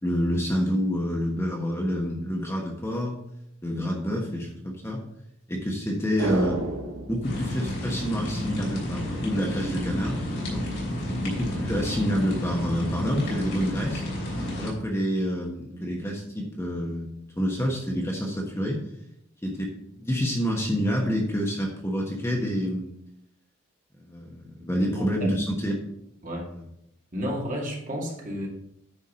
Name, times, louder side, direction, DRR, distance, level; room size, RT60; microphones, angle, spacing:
voice 1, 0.0-3.1 3.6-5.0 5.5-6.6 7.0-10.6 11.2-14.0 14.6-17.1 17.4-18.8 19.4-19.7 20.0-22.9 24.0-25.9, equal, 15° left, -1 dB, 1.2 m, -28 dB
sound 1, 6.2-8.7 8.9-9.0, right 2 dB, 75° right, 1.2 m, -32 dB
sound 2, 7.2-14.7, left 1 dB, 55° left, 3.2 m, -31 dB
voice 2, 24.6-25.3 26.2-26.5 27.1-28.5, equal, 40° right, -2 dB, 2.2 m, -33 dB
9.8 x 4.7 x 5.4 m, 0.78 s
head